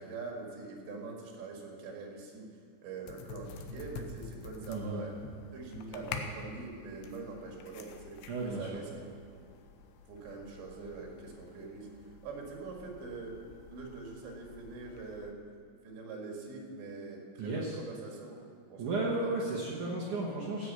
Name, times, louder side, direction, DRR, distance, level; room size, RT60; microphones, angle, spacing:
voice 1, 0.0-2.5 2.8-5.2 5.5-8.9 10.1-13.4 13.7-15.4 15.8-18.4 18.7-19.3, right 3 dB, 85° right, 0 dB, 4.1 m, -44 dB
sound 1, 3.1-15.3, left 5 dB, 85° left, 3.0 m, -48 dB
voice 2, 4.7-5.0 8.3-8.8 17.4-17.8 18.8-20.7, right 2 dB, 65° right, -4 dB, 2.2 m, -34 dB
15.5 x 6.2 x 8.3 m, 2.3 s
omnidirectional pair, 5.0 m